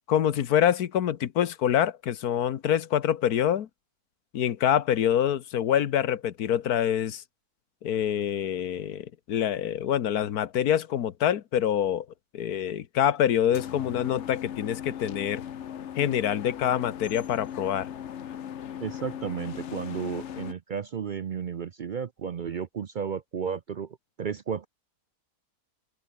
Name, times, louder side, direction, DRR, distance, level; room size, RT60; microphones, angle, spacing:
voice 1, 0.1-3.7 4.3-7.2 7.8-12.1 12.3-15.4 16.0-17.9, left 10 dB, 80° left, 1.5 m, -26 dB
sound 1, 13.5-20.5, left 9 dB, 55° left, 1.0 m, -38 dB
voice 2, 18.8-24.7, right 7 dB, 60° right, 0.5 m, -33 dB
open air
omnidirectional pair, 1.6 m